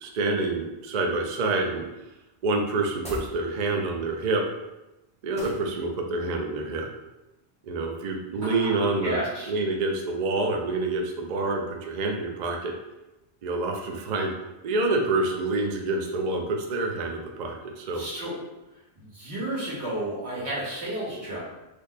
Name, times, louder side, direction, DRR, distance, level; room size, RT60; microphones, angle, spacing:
voice 1, 0.0-1.8 2.4-4.4 5.2-6.9 7.6-9.2 9.5-12.7 13.4-14.3 14.6-18.1, right 2 dB, 55° right, 2 dB, 0.5 m, -27 dB
sound 1, 3.0-3.4 5.3-5.7, equal, 5° left, 0.6 m, -38 dB
voice 2, 8.4-9.5 17.9-18.4 19.0-21.4, right 1 dB, 75° right, -7 dB, 1.6 m, -32 dB
3.2 x 2.1 x 3.9 m, 0.99 s
omnidirectional pair, 1.1 m